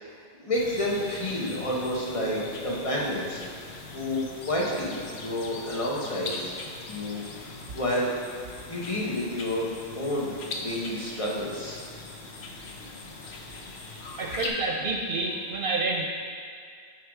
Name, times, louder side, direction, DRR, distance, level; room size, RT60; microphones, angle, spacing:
voice 1, 0.0-3.4 3.9-6.4 6.9-8.1 8.7-11.8, left 1 dB, 35° left, -4 dB, 1.2 m, -30 dB
sound 1, 0.5-14.5, left 3 dB, 90° left, 1.1 m, -41 dB
voice 2, 14.2-16.1, right 3 dB, 65° right, 0 dB, 0.8 m, -28 dB
8.0 x 4.8 x 4.7 m, 2.2 s
omnidirectional pair, 1.0 m